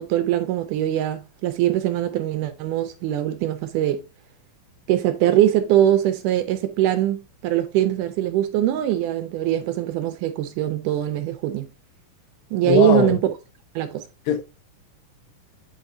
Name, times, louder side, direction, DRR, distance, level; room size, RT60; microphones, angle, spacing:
voice 1, 0.0-4.0 4.9-11.7 12.5-13.2 13.8-14.0, right 12 dB, 80° right, 2.0 m, -22 dB
voice 2, 12.6-13.2 14.3-14.4, left 8 dB, 80° left, 2.6 m, -20 dB
7.9 x 4.5 x 2.6 m
omnidirectional pair, 4.0 m